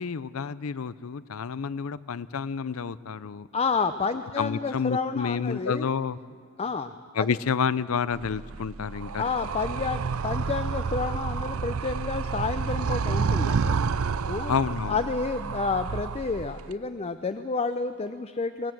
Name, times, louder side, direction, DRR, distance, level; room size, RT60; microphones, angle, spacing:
voice 1, 0.0-3.5 4.4-6.2 7.1-9.3 14.5-15.0, left 6 dB, 75° left, 18 dB, 0.5 m, -29 dB
voice 2, 3.5-5.9 6.6-7.4 9.2-13.8 14.2-14.5 14.9-18.7, left 4 dB, 30° left, 10 dB, 0.5 m, -30 dB
Animal, 8.1-16.7, right 5 dB, 75° right, 0.5 m, -29 dB
22.5 x 17.5 x 7.8 m, 2.1 s
head